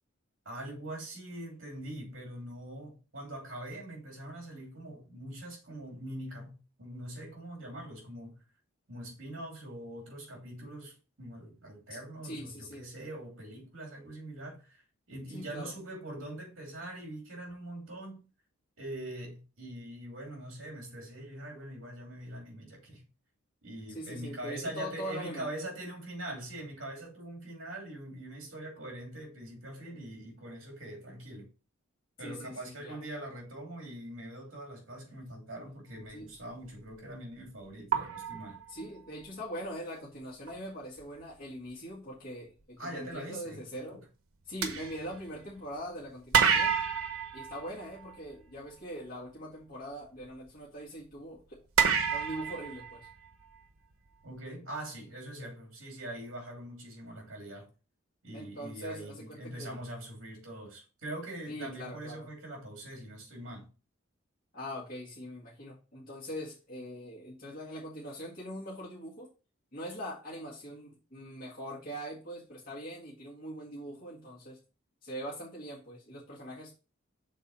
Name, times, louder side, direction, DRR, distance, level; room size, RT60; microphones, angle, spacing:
voice 1, 0.4-8.4 8.9-14.8 15.1-18.2 18.8-23.1 23.6-31.5 32.2-38.6 42.8-44.0 54.2-57.7 58.2-63.7, right 1 dB, 70° right, 2.7 m, -43 dB
voice 2, 12.2-12.8 15.3-15.7 23.9-25.5 32.2-33.0 36.1-36.3 38.7-44.0 44.5-46.7 47.3-51.6 52.0-53.1 55.4-55.5 58.3-59.8 61.5-62.3 64.5-69.3 69.7-74.6 75.0-76.7, equal, 45° left, 1.8 m, -42 dB
sound 1, 36.7-36.9 37.9-39.2 40.5-40.6 41.0-41.2 44.6-45.8 46.3-48.4 51.8-53.6, right 7 dB, 85° right, 0.9 m, -29 dB
6.5 x 3.9 x 4.1 m
head